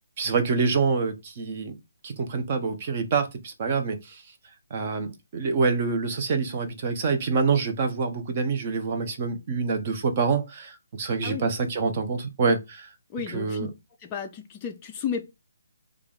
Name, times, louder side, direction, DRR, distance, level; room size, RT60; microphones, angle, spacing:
voice 1, 0.2-1.8 2.0-4.2 4.7-12.9 13.3-13.7, right 4 dB, 30° right, 0.7 m, -26 dB
voice 2, 13.1-13.7 14.0-15.2, left 7 dB, 15° left, 0.3 m, -33 dB
3.2 x 2.3 x 3.8 m
hypercardioid pair, 170°, 0 cm